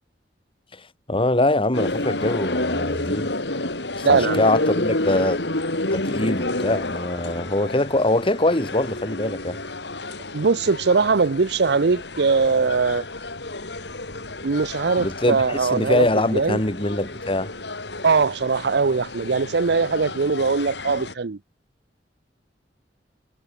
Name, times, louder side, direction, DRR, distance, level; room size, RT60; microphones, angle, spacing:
voice 1, 1.1-3.3 4.0-5.4 5.9-9.6 15.0-17.5, left 2 dB, 30° left, 3.2 m, -23 dB
sound 1, 1.7-21.1, left 2 dB, 75° left, 4.7 m, -30 dB
voice 2, 4.0-4.4 10.3-13.0 14.4-16.6 18.0-21.4, right 4 dB, 70° right, 0.7 m, -21 dB
head